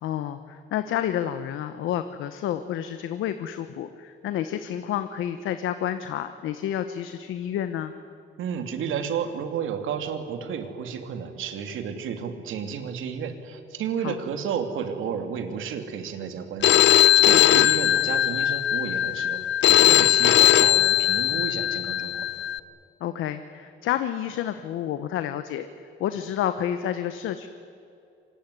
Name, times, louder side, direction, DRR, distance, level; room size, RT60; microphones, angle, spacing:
voice 1, 0.0-7.9 14.0-14.2 17.9-18.0 23.0-25.7 26.0-27.5, left 10 dB, 85° left, 10 dB, 1.1 m, -29 dB
voice 2, 8.4-19.4 19.6-22.3, right 7 dB, 85° right, 7 dB, 2.8 m, -32 dB
Telephone, 16.6-22.6, left 12 dB, 65° left, 0.8 m, -19 dB
25.5 x 21.0 x 9.8 m, 2.6 s
cardioid pair, 90°, 20 cm